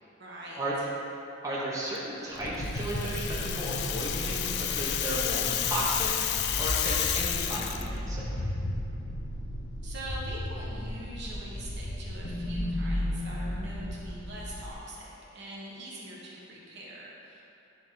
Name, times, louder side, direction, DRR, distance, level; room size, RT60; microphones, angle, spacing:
voice 1, 0.2-0.9 9.8-17.4, right 1 dB, 60° right, -5 dB, 1.3 m, -43 dB
voice 2, 1.4-6.1 6.6-8.4, right 1 dB, 15° right, -7 dB, 1.0 m, -34 dB
sound 1, 2.3-14.7, left 1 dB, 70° left, 1.0 m, -35 dB
Rattle (instrument), 2.6-7.9, left 10 dB, 55° left, 0.3 m, -31 dB
9.8 x 4.0 x 3.7 m, 2.8 s
head